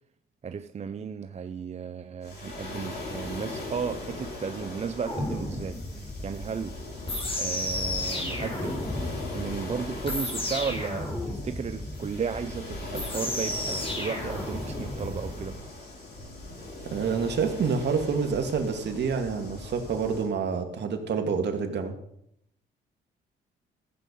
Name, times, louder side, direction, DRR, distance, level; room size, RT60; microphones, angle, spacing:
voice 1, 0.4-6.8 7.4-8.9 9.3-15.6, right 6 dB, 35° right, 0.6 m, -34 dB
Waves surf, 2.2-20.3, left 2 dB, 55° left, 6.8 m, -39 dB
sound 1, 5.1-15.5, left 1 dB, 30° left, 4.4 m, -33 dB
voice 2, 16.9-21.9, right 5 dB, 60° right, 2.2 m, -28 dB
15.0 x 8.4 x 5.4 m
cardioid pair, 90°, 20 cm